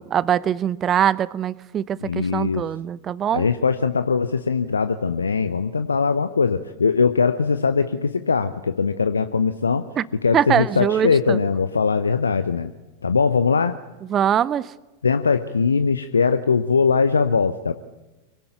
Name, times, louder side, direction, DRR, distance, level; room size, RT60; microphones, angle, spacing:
voice 1, 0.0-3.5 10.0-10.1 10.3-11.4 14.1-14.7, right 9 dB, 25° right, 20 dB, 0.7 m, -22 dB
voice 2, 2.0-2.6 3.3-9.8 10.2-12.7 13.0-13.8 15.0-17.7, left 5 dB, 75° left, 11 dB, 0.8 m, -21 dB
25.0 x 17.5 x 9.2 m, 1.1 s
figure-of-eight pair, 90°, 0 cm